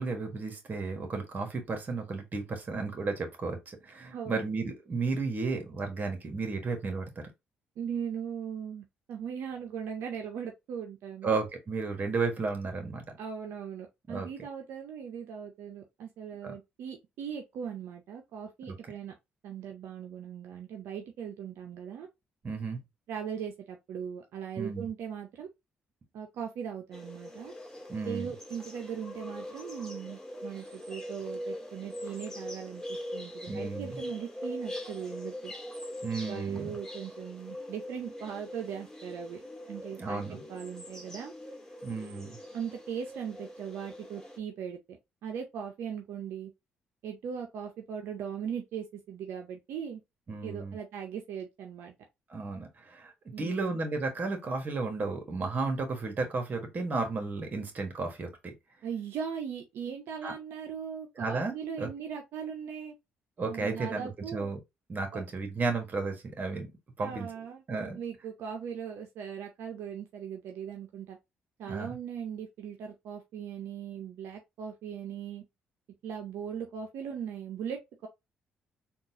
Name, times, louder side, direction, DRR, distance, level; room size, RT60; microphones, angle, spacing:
voice 1, 0.0-7.2 11.2-13.0 14.1-14.3 16.4-16.5 22.4-22.8 24.6-24.9 27.9-28.3 33.5-34.0 36.0-36.8 40.0-40.4 41.8-42.4 50.3-50.8 52.3-53.1 53.4-58.5 60.2-60.3 61.2-61.9 63.4-64.6 64.9-66.7 67.0-67.3 67.7-68.0 71.6-72.0, right 3 dB, 45° right, 1.4 m, -33 dB
voice 2, 7.8-11.4 13.2-19.1 19.4-22.1 23.1-25.5 26.1-27.5 28.0-35.5 36.3-39.4 39.7-41.3 42.5-45.0 45.2-46.5 47.0-50.0 50.4-51.9 53.3-53.8 58.8-62.9 63.5-64.5 65.1-65.2 67.0-67.6 67.9-71.2 71.6-75.4 76.0-78.1, right 8 dB, 75° right, 0.5 m, -39 dB
sound 1, 26.9-44.4, equal, 10° left, 1.4 m, -42 dB
3.8 x 2.4 x 2.7 m
supercardioid pair, 65°, 4 cm